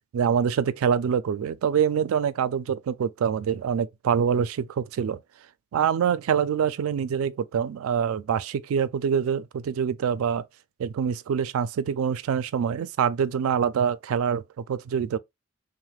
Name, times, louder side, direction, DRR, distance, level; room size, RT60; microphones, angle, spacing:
voice 1, 0.1-5.2 5.7-10.5 10.8-15.2, right 7 dB, 85° right, 0.3 m, -25 dB
3.1 x 2.1 x 3.2 m
head